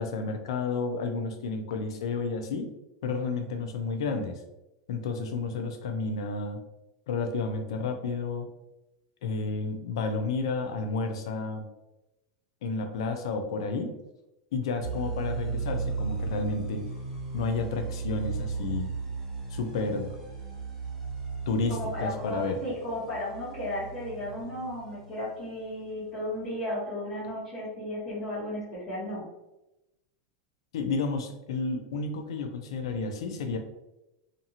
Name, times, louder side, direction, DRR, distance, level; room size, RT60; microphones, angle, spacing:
voice 1, 0.0-2.7 3.0-4.4 4.9-6.6 7.1-8.5 9.2-11.7 12.6-13.9 14.5-16.8 17.3-18.9 19.5-20.1 21.5-22.6 30.7-33.6, left 4 dB, 80° left, 5 dB, 0.5 m, -31 dB
sound 1, 14.8-25.3, right 4 dB, 25° right, 0.9 m, -35 dB
voice 2, 21.7-29.3, left 1 dB, 30° left, -12 dB, 1.2 m, -34 dB
2.6 x 2.5 x 2.7 m, 0.95 s
supercardioid pair, 160°, 3 cm